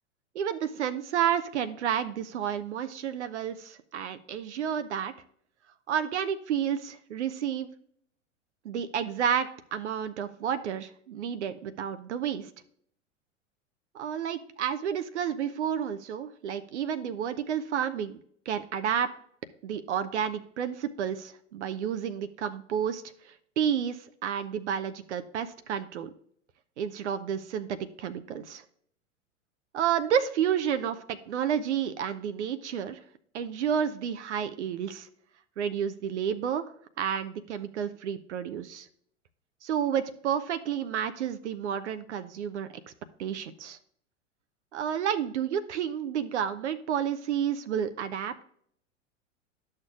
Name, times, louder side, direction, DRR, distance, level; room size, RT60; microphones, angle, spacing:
voice 1, 0.3-5.1 5.9-7.7 8.6-12.5 13.9-18.2 18.5-19.1 19.6-23.0 23.6-26.1 26.8-28.6 29.7-33.0 33.3-35.1 35.6-36.6 37.0-38.9 39.6-42.7 43.2-43.8 44.7-48.4, right 8 dB, 65° right, 11 dB, 0.7 m, -30 dB
11.5 x 6.6 x 2.4 m, 0.65 s
figure-of-eight pair, 95°, 37 cm